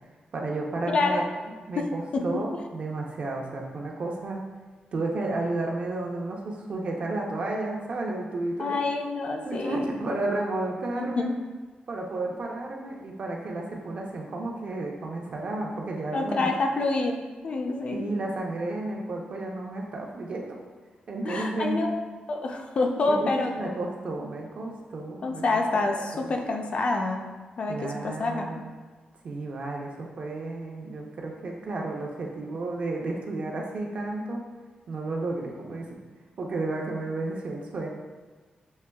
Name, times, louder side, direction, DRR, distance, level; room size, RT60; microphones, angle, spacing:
voice 1, 0.3-1.2 1.7-4.4 4.9-8.8 9.4-11.3 11.9-16.5 17.9-20.6 21.1-21.8 23.3-25.4 26.2-26.4 27.7-28.7 29.2-34.4 34.9-35.9 36.4-37.9, right 2 dB, 45° right, 0 dB, 0.6 m, -32 dB
voice 2, 8.6-9.8 10.9-11.4 16.1-17.2 17.4-18.1 21.2-23.7 25.2-27.3 27.6-28.5, left 3 dB, 40° left, 2 dB, 0.4 m, -27 dB
6.4 x 2.9 x 2.3 m, 1.4 s
wide cardioid pair, 170°, 3 cm